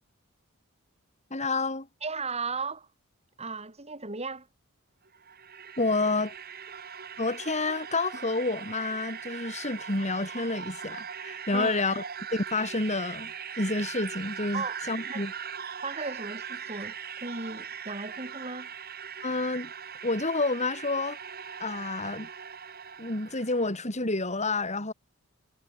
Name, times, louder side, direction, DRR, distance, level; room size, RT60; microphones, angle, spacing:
voice 1, 1.3-1.9 5.8-6.3 7.2-12.0 12.3-13.3 13.6-15.3 19.2-19.7 20.0-21.2 21.6-22.3 23.0-24.9, left 3 dB, 30° left, 3.5 m, -29 dB
voice 2, 2.0-2.9 3.4-4.5 11.5-11.8 14.5-14.8 15.1-15.3 15.8-18.7, right 4 dB, 30° right, 5.1 m, -36 dB
sound 1, 5.1-23.7, right 7 dB, 45° right, 4.8 m, -40 dB
head